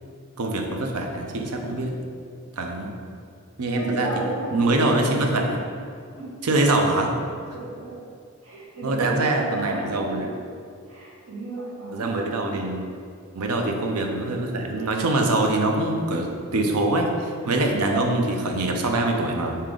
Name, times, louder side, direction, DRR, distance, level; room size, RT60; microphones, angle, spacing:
voice 1, 0.4-1.9 2.6-2.9 3.6-4.1 4.5-5.6 6.4-7.1 8.8-10.3 11.9-12.8 13.4-19.6, right 2 dB, 90° right, 2 dB, 0.5 m, -24 dB
voice 2, 2.8-3.2 3.7-5.3 6.1-6.4 7.5-8.0 8.4-10.1 10.9-12.2, right 2 dB, 70° right, -5 dB, 1.2 m, -35 dB
4.9 x 2.8 x 3.7 m, 2.3 s
head